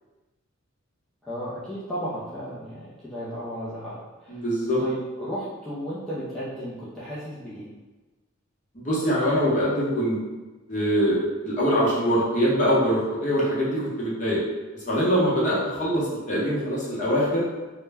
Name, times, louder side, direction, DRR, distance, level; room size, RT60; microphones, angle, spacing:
voice 1, 1.2-4.4 4.8-7.7, equal, ahead, -11 dB, 0.4 m, -34 dB
voice 2, 4.3-4.8 8.7-10.2 10.7-11.2 11.4-14.4 14.7-17.4, equal, 35° left, -7 dB, 0.7 m, -23 dB
2.1 x 2.1 x 3.3 m, 1.2 s
head